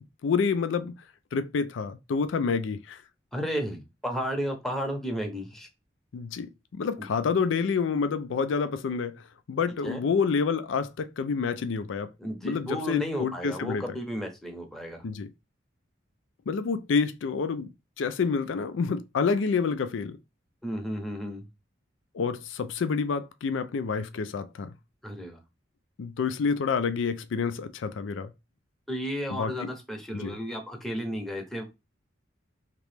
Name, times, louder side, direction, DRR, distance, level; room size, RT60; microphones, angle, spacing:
voice 1, 0.2-1.0 1.3-3.0 6.1-9.2 9.5-12.1 12.4-13.8 15.0-15.3 16.5-17.7 18.0-20.2 22.1-24.7 26.0-28.3 29.3-29.7 30.1-30.4, left 5 dB, 90° left, 0.4 m, -28 dB
voice 2, 3.3-5.7 7.0-7.1 9.8-10.0 12.2-15.0 20.6-21.4 25.0-25.4 28.9-31.7, equal, ahead, 0.7 m, -33 dB
3.0 x 2.9 x 3.3 m
head